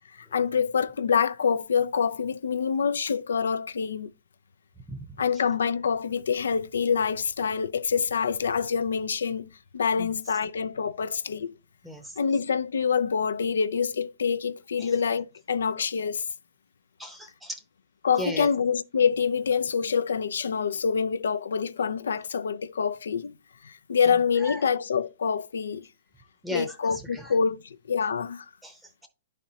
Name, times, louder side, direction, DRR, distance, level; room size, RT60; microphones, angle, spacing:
voice 1, 0.1-4.1 5.2-11.5 12.2-16.2 18.0-23.4 23.6-25.9 26.5-28.5, left 6 dB, 80° left, 0.4 m, -26 dB
voice 2, 11.8-12.2 14.8-14.9 17.0-17.6 18.2-18.5 24.1-24.7 26.4-27.3 28.6-29.1, equal, 5° right, 0.7 m, -38 dB
10.5 x 4.2 x 2.8 m
hypercardioid pair, 130°, 0 cm